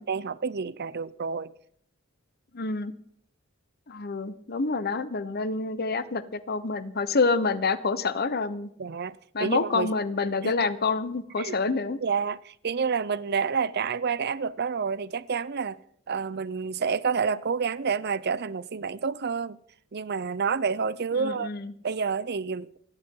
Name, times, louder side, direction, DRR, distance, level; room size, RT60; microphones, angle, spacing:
voice 1, 0.0-1.5 8.8-9.9 10.4-10.5 11.4-11.6 12.0-15.8 16.1-19.6 19.9-21.5 21.8-22.7, right 5 dB, 50° right, 0.6 m, -29 dB
voice 2, 2.5-2.9 3.9-8.7 9.3-12.0 21.2-21.7, left 4 dB, 50° left, 1.0 m, -27 dB
28.5 x 11.5 x 3.9 m
head